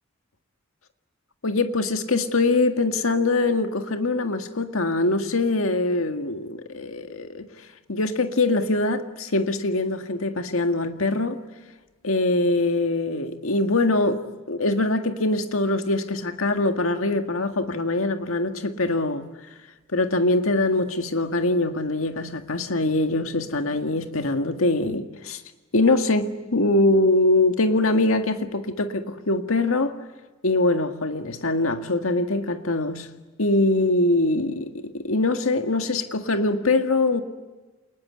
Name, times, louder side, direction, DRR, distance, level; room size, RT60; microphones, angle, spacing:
voice 1, 1.4-11.4 12.0-19.3 19.9-25.4 25.7-30.0 30.4-33.1 33.4-37.2, left 2 dB, 90° left, 1.8 m, -23 dB
28.0 x 20.5 x 9.6 m
head